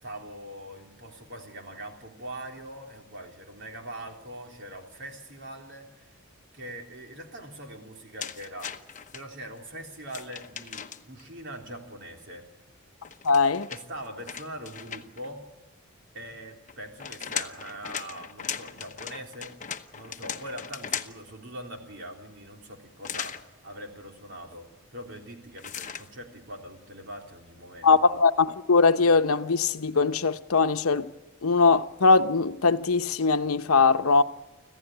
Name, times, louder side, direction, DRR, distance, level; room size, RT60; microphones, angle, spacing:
voice 1, 0.0-6.1 6.5-8.7 9.1-12.5 13.7-15.4 16.1-19.6 19.9-28.1, right 1 dB, 55° right, 3.5 m, -42 dB
sound 1, 8.2-9.2 10.1-11.2 13.0-15.3 16.7-21.3 23.0-23.4 25.6-26.1, left 8 dB, 35° left, 1.0 m, -37 dB
voice 2, 13.2-13.7 27.8-31.1 31.4-34.2, left 4 dB, 80° left, 0.9 m, -21 dB
26.0 x 15.5 x 9.1 m
head